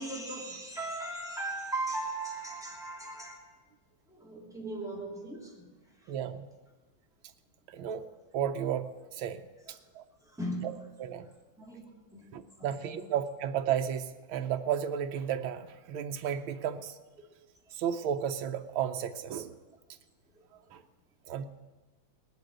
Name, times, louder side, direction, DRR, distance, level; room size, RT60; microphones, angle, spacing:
voice 1, 0.0-3.4 4.1-5.5 10.4-10.7 11.6-11.8 12.1-12.3 12.6-12.9, right 2 dB, ahead, -4 dB, 3.1 m, -37 dB
voice 2, 6.1-6.4 7.7-8.1 8.3-9.4 10.0-10.1 10.6-10.7 11.0-11.3 12.3-16.9 17.8-19.6 20.7-20.8 21.3-21.4, right 9 dB, 85° right, 7 dB, 1.5 m, -33 dB
18.5 x 7.6 x 7.9 m, 1.2 s
omnidirectional pair, 2.2 m